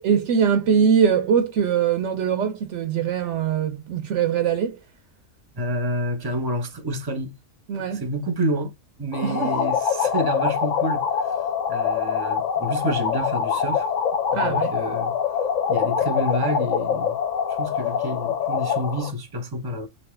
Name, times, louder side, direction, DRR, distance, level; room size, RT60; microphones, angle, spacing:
voice 1, 0.0-4.8 7.7-8.0 9.2-9.5 14.3-14.7, right 7 dB, 70° right, 0.8 m, -22 dB
voice 2, 5.6-7.3 7.8-8.7 9.0-11.0 11.7-13.8 14.3-15.1 15.7-17.2 17.6-19.9, equal, 20° right, 0.7 m, -28 dB
sound 1, 9.1-19.1, left 7 dB, 75° left, 1.1 m, -24 dB
3.5 x 2.7 x 3.2 m
omnidirectional pair, 1.3 m